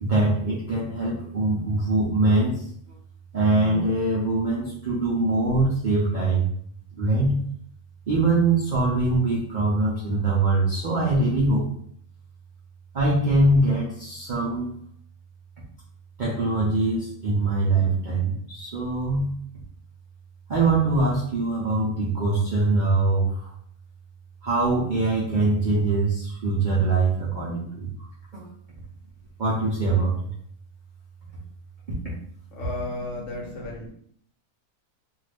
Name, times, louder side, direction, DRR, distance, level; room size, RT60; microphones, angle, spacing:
voice 1, 0.0-2.6 3.3-6.5 7.0-7.4 8.1-11.7 12.9-14.7 16.2-19.3 20.5-23.5 24.4-27.9 28.3-28.5 29.4-30.3 32.0-32.1, right 2 dB, 60° right, -6 dB, 0.5 m, -23 dB
voice 2, 32.5-33.9, left 2 dB, 60° left, -3 dB, 1.0 m, -34 dB
2.6 x 2.4 x 3.3 m, 0.65 s
omnidirectional pair, 1.6 m